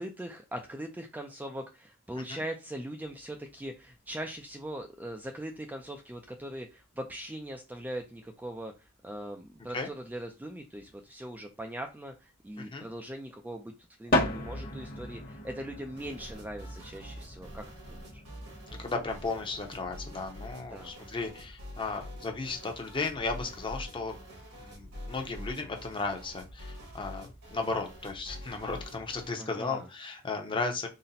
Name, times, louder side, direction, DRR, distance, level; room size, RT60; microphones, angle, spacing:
voice 1, 0.0-13.7 14.0-18.2 20.7-20.9 29.4-29.9, right 1 dB, 10° right, 3 dB, 0.3 m, -41 dB
sound 1, 3.1-3.8 4.1-4.5 5.6-5.7 5.8-5.9 6.4-6.5 7.4-7.5 7.7-7.8 8.6-8.7 8.9-9.0 9.2-9.3 10.5-11.2 14.1-20.4, left 1 dB, 45° left, 1.1 m, -36 dB
sound 2, 16.0-29.4, equal, 80° right, 1.6 m, -46 dB
voice 2, 18.8-24.2 24.5-30.9, left 3 dB, 25° left, 3 dB, 0.7 m, -35 dB
4.0 x 2.1 x 4.0 m, 0.27 s
head